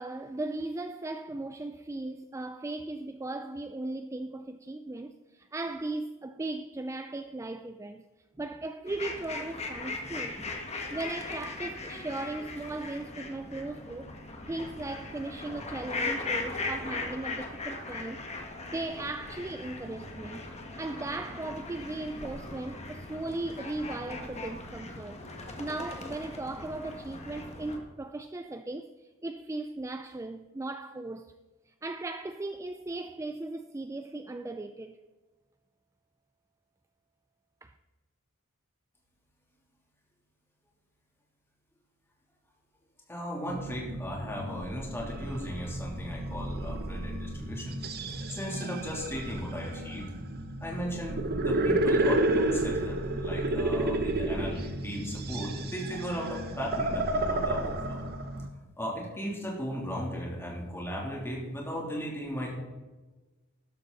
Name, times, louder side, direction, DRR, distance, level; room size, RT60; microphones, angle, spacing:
voice 1, 0.0-8.0 8.4-10.6 10.9-14.2 14.5-18.2 18.7-20.4 20.8-25.2 25.6-31.3 31.7-35.0 37.6-37.7, right 2 dB, 15° right, 0.4 m, -37 dB
sound 1, 8.9-27.8, left 3 dB, 30° left, 1.6 m, -39 dB
voice 2, 43.1-47.8 48.3-50.1 50.6-58.0 58.8-62.5, equal, 10° left, 3.1 m, -36 dB
sound 2, 43.5-58.5, right 1 dB, 45° right, 1.1 m, -31 dB
13.0 x 11.5 x 4.0 m
head